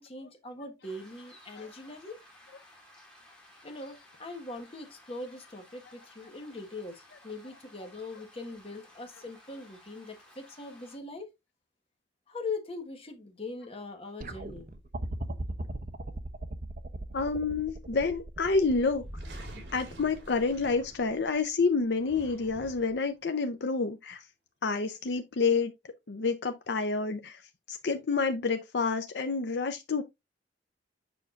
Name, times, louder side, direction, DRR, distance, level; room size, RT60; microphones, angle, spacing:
voice 1, 0.0-2.2 3.6-11.3 12.3-14.7, left 3 dB, 35° left, 1.4 m, -41 dB
sound 1, 0.8-11.0, left 1 dB, 5° left, 2.3 m, -57 dB
sound 2, 14.2-21.4 22.5-22.6, right 1 dB, 50° right, 0.7 m, -39 dB
voice 2, 17.1-19.0 19.7-24.3 24.6-25.7 26.1-30.0, left 4 dB, 70° left, 0.6 m, -29 dB
sound 3, 18.9-21.4 21.9-23.1, right 1 dB, 65° right, 3.0 m, -47 dB
7.1 x 5.9 x 2.5 m
head